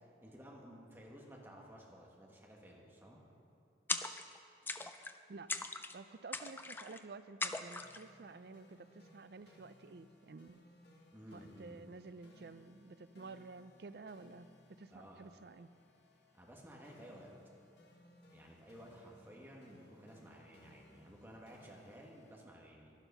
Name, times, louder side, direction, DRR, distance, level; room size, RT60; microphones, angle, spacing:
voice 1, 0.0-3.2 11.1-11.8 14.9-15.2 16.3-17.3 18.3-22.9, equal, 10° right, -2 dB, 1.6 m, -55 dB
sound 1, 3.9-4.4 4.7-5.2 5.5-6.0 6.3-7.0 7.4-8.0, left 3 dB, 10° left, 0.3 m, -40 dB
voice 2, 5.3-10.6 11.3-15.7, right 3 dB, 60° right, 13 dB, 0.4 m, -52 dB
sound 2, 7.7-22.4, left 1 dB, 70° left, 1.5 m, -64 dB
12.0 x 11.5 x 5.5 m, 2.7 s
head